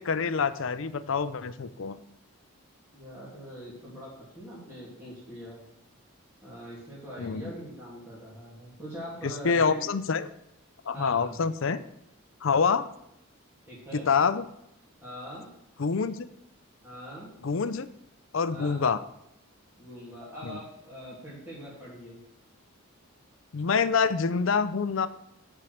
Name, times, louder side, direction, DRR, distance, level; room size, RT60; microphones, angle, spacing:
voice 1, 0.0-2.0 7.2-7.4 9.2-10.3 10.9-11.8 12.4-12.9 13.9-14.5 15.8-16.3 17.4-17.9 18.3-19.0 20.4-20.6 23.5-25.1, left 5 dB, 60° left, 14 dB, 0.5 m, -26 dB
voice 2, 2.9-5.6 6.4-9.8 10.9-11.4 13.7-14.1 15.0-15.5 16.8-17.3 18.5-18.9 19.8-22.2, equal, 10° right, -8 dB, 2.4 m, -42 dB
9.0 x 4.6 x 6.4 m, 0.83 s
head